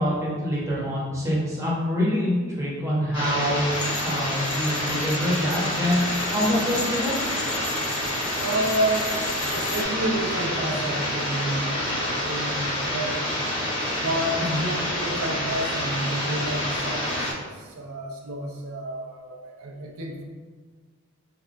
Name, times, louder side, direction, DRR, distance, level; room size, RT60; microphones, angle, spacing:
voice 1, 0.0-3.6 4.0-7.2 14.4-14.6, equal, 15° right, -6 dB, 1.0 m, -25 dB
sound 1, 3.1-17.3, left 1 dB, 25° left, 1.4 m, -28 dB
sound 2, 3.7-9.8, left 3 dB, 75° left, 0.8 m, -37 dB
voice 2, 8.4-9.2 9.5-13.3 14.0-20.2, right 1 dB, 80° right, 1 dB, 0.6 m, -30 dB
4.2 x 3.3 x 2.5 m, 1.5 s
head